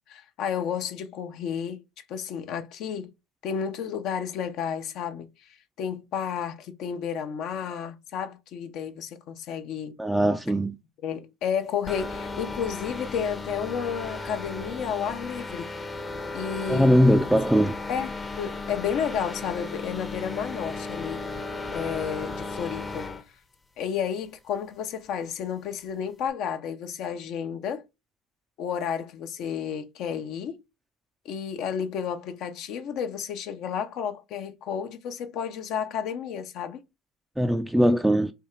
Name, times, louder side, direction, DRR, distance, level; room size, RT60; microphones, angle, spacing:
voice 1, 0.1-3.1 3.4-9.9 11.0-15.7 16.3-17.0 17.2-17.4 17.9-21.3 21.7-23.1 23.8-27.9 28.6-30.6 31.2-36.8, left 7 dB, 60° left, 0.7 m, -32 dB
voice 2, 10.0-10.8 16.7-17.8 37.4-38.3, equal, 5° right, 0.4 m, -20 dB
sound 1, 11.9-23.2, left 3 dB, 25° left, 0.7 m, -35 dB
3.4 x 2.4 x 4.3 m
hypercardioid pair, 80°, 0 cm